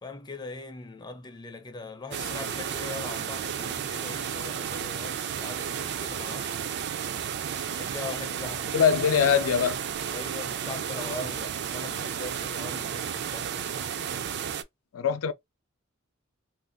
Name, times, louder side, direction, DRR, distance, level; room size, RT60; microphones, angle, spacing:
voice 1, 0.0-6.7 7.8-8.8 10.1-13.9, left 3 dB, 20° left, 0.4 m, -41 dB
sound 1, 2.1-14.6, right 8 dB, 55° right, 0.4 m, -33 dB
voice 2, 8.7-9.8 14.9-15.3, left 7 dB, 85° left, 0.4 m, -22 dB
2.5 x 2.3 x 3.5 m
head